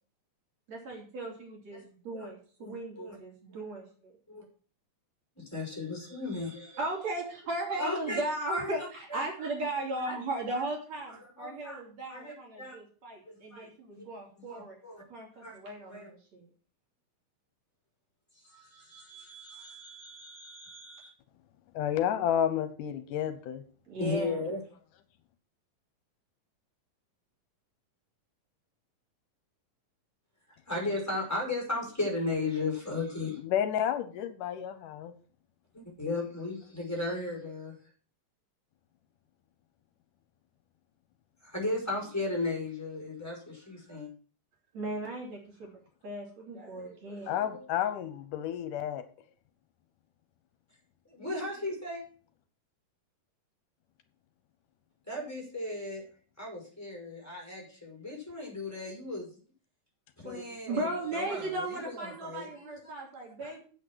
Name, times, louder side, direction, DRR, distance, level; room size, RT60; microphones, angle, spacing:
voice 1, 0.7-4.1 6.8-14.8 15.1-16.4 23.9-24.4 44.7-45.7 46.0-47.6 60.2-63.6, right 2 dB, 55° right, -1 dB, 4.5 m, -37 dB
voice 2, 2.6-3.2 4.3-4.4 5.4-6.8 7.8-8.2 8.5-9.3 10.0-10.1 10.5-10.6 11.4-11.8 12.1-12.8 13.3-14.0 14.4-15.0 15.4-15.6 15.9-16.1 18.5-21.1 24.0-24.6 30.7-33.4 35.7-37.7 41.4-44.1 51.1-52.0 55.1-56.1 56.4-59.3 60.2-62.9 63.4-63.6, left 2 dB, 5° left, -1 dB, 5.4 m, -36 dB
voice 3, 21.7-23.6 33.4-35.1 47.3-49.0, left 10 dB, 75° left, 11 dB, 2.4 m, -31 dB
8.7 x 8.3 x 6.2 m, 0.40 s
omnidirectional pair, 3.8 m